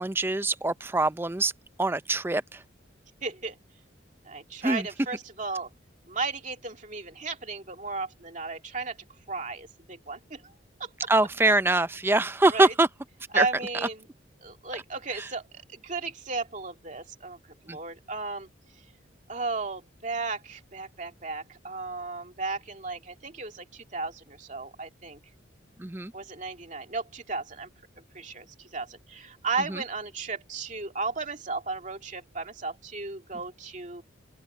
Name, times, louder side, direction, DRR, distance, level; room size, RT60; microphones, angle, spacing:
voice 1, 0.0-1.5 1.8-2.6 4.6-4.9 11.1-12.9 13.3-13.5 17.7-17.8 25.8-26.1 29.7-29.8, right 2 dB, 10° right, 0.4 m, -24 dB
voice 2, 3.2-3.6 4.2-5.7 6.1-9.0 9.3-10.5 10.8-10.9 12.5-12.7 13.3-14.1 14.4-17.4 17.6-18.5 19.3-25.2 26.1-27.7 28.1-34.0, right 4 dB, 40° right, 2.5 m, -34 dB
open air
head